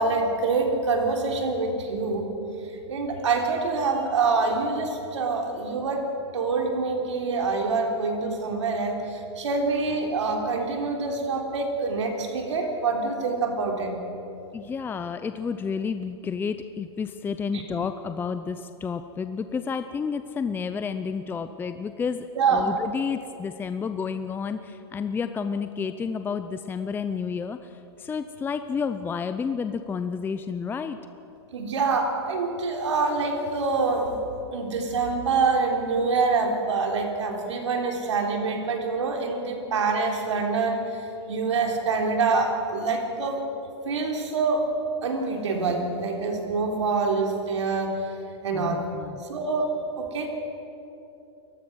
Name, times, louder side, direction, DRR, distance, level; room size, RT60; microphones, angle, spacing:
voice 1, 0.0-2.3 2.9-13.9 17.5-17.6 22.4-22.7 31.5-34.2 34.5-43.4 43.8-44.7 45.0-48.0 48.4-48.8 49.2-50.3, right 4 dB, 85° right, 2 dB, 3.7 m, -26 dB
voice 2, 14.5-31.0 48.5-49.2, left 6 dB, 15° left, 9 dB, 0.6 m, -30 dB
29.0 x 15.0 x 6.3 m, 2.9 s
hypercardioid pair, 130°, 15 cm